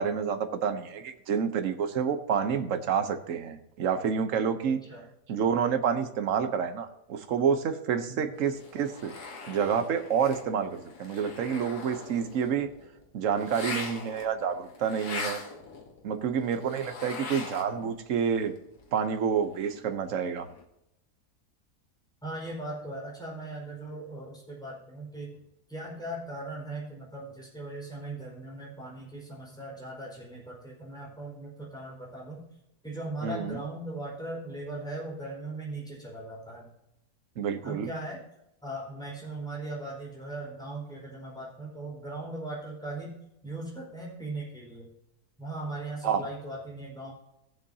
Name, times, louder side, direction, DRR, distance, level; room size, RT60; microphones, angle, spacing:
voice 1, 0.0-4.8 5.3-9.1 9.5-12.7 13.1-15.4 16.0-18.5 18.9-20.5 33.2-33.6 37.4-37.9 46.0-46.2, right 7 dB, 60° right, 8 dB, 1.2 m, -28 dB
sound 1, 8.3-17.9 18.2-20.6, left 4 dB, 80° left, 1.9 m, -42 dB
voice 2, 22.2-25.3 25.7-32.4 32.8-36.7 37.6-38.2 38.6-43.1 43.4-44.9 45.4-47.1, right 2 dB, ahead, -5 dB, 4.7 m, -39 dB
17.0 x 7.8 x 2.8 m, 0.83 s
omnidirectional pair, 1.7 m